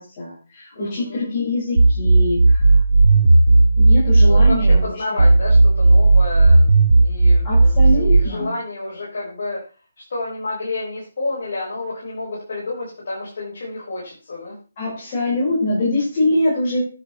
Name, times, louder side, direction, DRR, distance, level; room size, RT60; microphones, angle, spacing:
voice 1, 0.0-2.8 3.8-5.2 7.4-8.5 14.8-16.8, left 1 dB, 30° left, -9 dB, 6.1 m, -23 dB
voice 2, 0.7-1.3 4.2-9.6 10.1-14.6, left 2 dB, 60° left, -6 dB, 5.6 m, -30 dB
sound 1, 1.8-4.8 5.2-8.2, right 2 dB, 90° right, 0.9 m, -13 dB
10.5 x 8.0 x 3.4 m, 0.36 s
hypercardioid pair, 160°, 0 cm